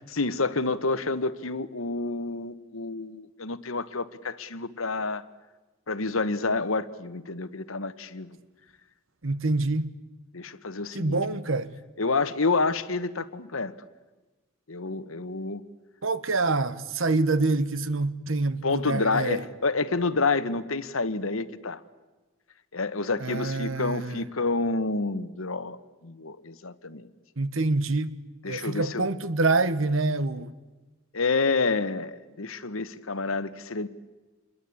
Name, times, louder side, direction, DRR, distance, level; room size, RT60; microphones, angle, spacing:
voice 1, 0.1-5.2 5.9-8.4 10.3-11.2 12.0-13.7 14.7-15.6 18.6-21.8 22.7-25.8 26.0-27.1 28.4-29.0 31.1-33.9, left 3 dB, 80° left, 1.3 m, -28 dB
voice 2, 9.2-9.9 10.9-11.7 16.0-19.4 23.2-24.2 27.4-28.2 28.4-30.5, right 3 dB, 70° right, 1.2 m, -26 dB
27.5 x 22.0 x 8.6 m
head